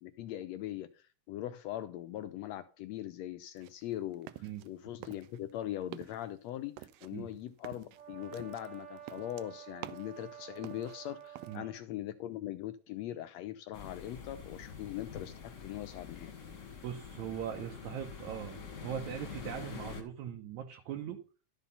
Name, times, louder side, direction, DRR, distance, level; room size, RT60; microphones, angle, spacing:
voice 1, 0.0-4.3 4.6-16.3, left 13 dB, 80° left, 12 dB, 1.6 m, -41 dB
sound 1, 3.5-4.7 5.0-5.6 5.8-6.3 6.8-10.2 10.6-11.6, right 13 dB, 90° right, 1.4 m, -48 dB
Brass instrument, 7.9-11.8, right 10 dB, 55° right, 2.2 m, -50 dB
sound 2, 13.7-20.0, left 6 dB, 35° left, 1.2 m, -46 dB
voice 2, 16.8-21.2, right 9 dB, 70° right, 3 dB, 2.2 m, -40 dB
12.0 x 5.7 x 5.3 m, 0.34 s
omnidirectional pair, 3.6 m